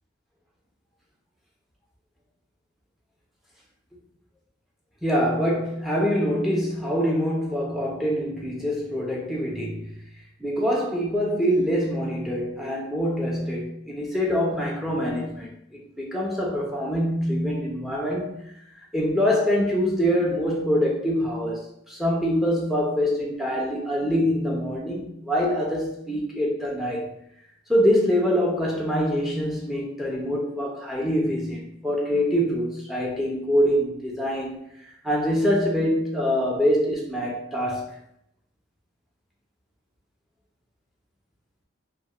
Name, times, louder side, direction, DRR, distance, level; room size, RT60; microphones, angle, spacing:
voice 1, 5.0-9.9 10.4-18.5 18.9-27.1 27.7-37.9, equal, ahead, -2 dB, 0.4 m, -25 dB
2.3 x 2.0 x 2.9 m, 0.77 s
head